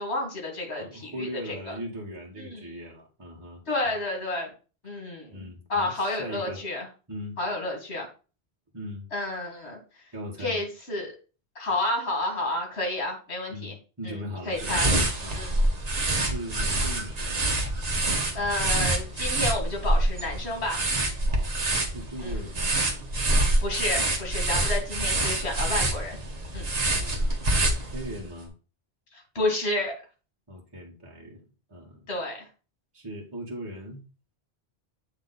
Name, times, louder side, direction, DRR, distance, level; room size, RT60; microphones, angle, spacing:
voice 1, 0.0-1.7 2.4-2.7 3.7-4.5 4.8-5.4 5.7-6.9 7.4-8.1 9.1-9.8 10.4-11.1 11.6-13.7 14.0-14.9 15.3-15.6 18.3-20.8 22.2-22.3 23.6-26.2 26.5-26.8 29.1-29.9 32.1-32.5, left 2 dB, 75° left, 2 dB, 2.2 m, -30 dB
voice 2, 0.8-4.0 4.9-5.0 5.3-6.6 7.1-7.4 8.7-9.1 10.1-10.6 13.5-14.8 15.2-15.4 16.2-17.4 21.3-21.6 21.8-22.8 25.3-25.7 26.8-27.4 27.9-28.5 30.5-32.1 32.9-34.0, equal, 20° right, -5 dB, 1.5 m, -39 dB
sound 1, 14.5-28.2, right 1 dB, 40° right, 1.1 m, -26 dB
7.8 x 3.2 x 4.0 m, 0.35 s
omnidirectional pair, 1.1 m